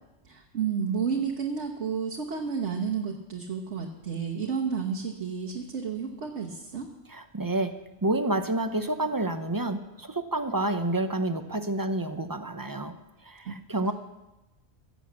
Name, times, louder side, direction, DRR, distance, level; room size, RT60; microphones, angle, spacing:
voice 1, 0.2-6.9 13.4-13.5, right 6 dB, 75° right, 0 dB, 1.5 m, -31 dB
voice 2, 7.1-7.7 8.0-12.9 13.2-13.9, right 2 dB, 25° right, 9 dB, 0.6 m, -29 dB
16.0 x 7.0 x 7.4 m, 1.0 s
omnidirectional pair, 1.2 m